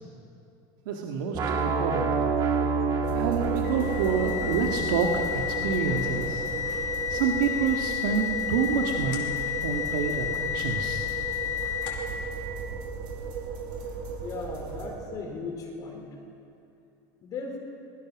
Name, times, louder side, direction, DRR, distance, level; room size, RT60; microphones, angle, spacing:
voice 1, 0.9-2.3 3.1-6.4 7.1-9.4 9.6-11.1, right 6 dB, 85° right, 1 dB, 2.0 m, -28 dB
sound 1, 1.3-7.3, right 4 dB, 35° right, 2.2 m, -29 dB
sound 2, 3.0-14.9, right 5 dB, 50° right, 5.0 m, -36 dB
sound 3, 3.6-12.2, left 10 dB, 90° left, 4.8 m, -31 dB
voice 2, 14.2-16.1 17.2-17.6, left 4 dB, 35° left, 1 dB, 4.1 m, -37 dB
26.5 x 20.5 x 6.3 m, 2.6 s
cardioid pair, 155°, 10 cm